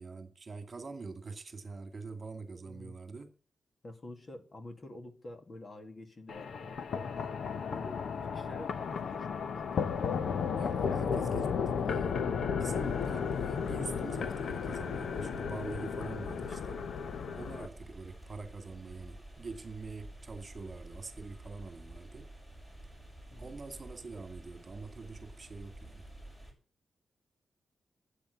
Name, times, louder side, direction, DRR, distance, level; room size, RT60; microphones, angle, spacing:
voice 1, 0.0-3.3 10.6-11.5 11.9-12.2 12.5-16.8 17.3-22.3 23.4-26.1, right 4 dB, 35° right, 2.1 m, -45 dB
voice 2, 2.6-2.9 3.8-9.7 10.9-11.6 23.3-23.6, left 1 dB, 35° left, 2.1 m, -48 dB
sound 1, 6.3-17.7, left 6 dB, 70° left, 1.0 m, -34 dB
sound 2, 12.7-26.5, right 1 dB, 10° left, 5.4 m, -50 dB
13.5 x 8.7 x 8.2 m
wide cardioid pair, 145°, 0 cm